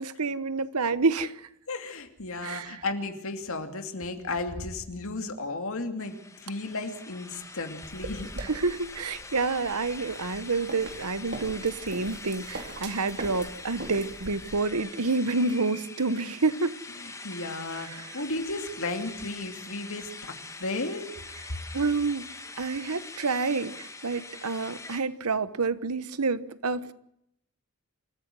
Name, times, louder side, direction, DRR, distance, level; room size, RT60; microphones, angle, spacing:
voice 1, 0.0-1.5 2.4-2.8 8.4-16.8 17.8-18.2 21.7-22.3 22.6-26.9, right 3 dB, 80° right, 1.1 m, -28 dB
voice 2, 1.7-6.2 6.4-8.3 17.0-21.1, left 2 dB, 65° left, 2.7 m, -34 dB
sound 1, 6.0-25.0, left 3 dB, 15° left, 1.6 m, -44 dB
sound 2, 7.8-14.6, right 2 dB, 50° right, 3.5 m, -42 dB
27.5 x 14.5 x 7.7 m
head